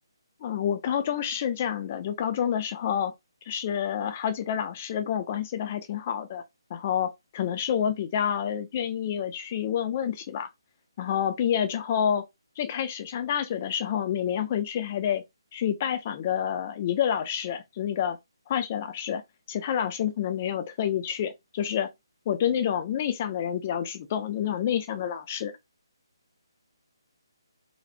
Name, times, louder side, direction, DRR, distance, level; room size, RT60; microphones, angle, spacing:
voice 1, 0.4-3.1 3.5-6.4 6.7-10.5 11.0-12.2 12.6-15.2 15.5-18.2 18.5-19.2 19.5-21.9 22.3-25.5, left 9 dB, 15° left, 0.4 m, -28 dB
4.2 x 2.6 x 3.9 m
hypercardioid pair, 180°, 3 cm